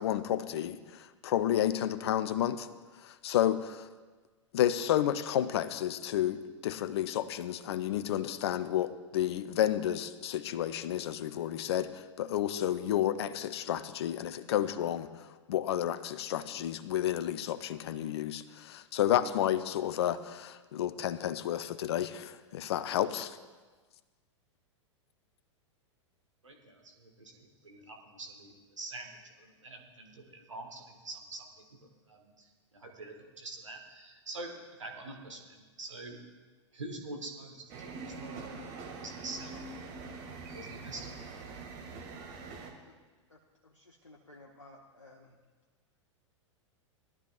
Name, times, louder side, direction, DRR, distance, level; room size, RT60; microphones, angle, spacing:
voice 1, 0.0-2.7 3.0-3.9 4.5-23.4, left 11 dB, 60° left, 13 dB, 0.7 m, -31 dB
voice 2, 26.4-29.1 29.4-31.5 32.1-32.5 32.7-34.5 34.8-36.2 36.7-38.3 39.0-39.7 40.5-41.1, right 2 dB, 80° right, 2 dB, 1.6 m, -45 dB
sound 1, 37.7-42.7, right 4 dB, 45° right, 1.9 m, -44 dB
voice 3, 43.7-45.3, left 2 dB, 85° left, -1 dB, 0.9 m, -55 dB
19.0 x 12.0 x 2.4 m, 1.3 s
figure-of-eight pair, 95°, 16 cm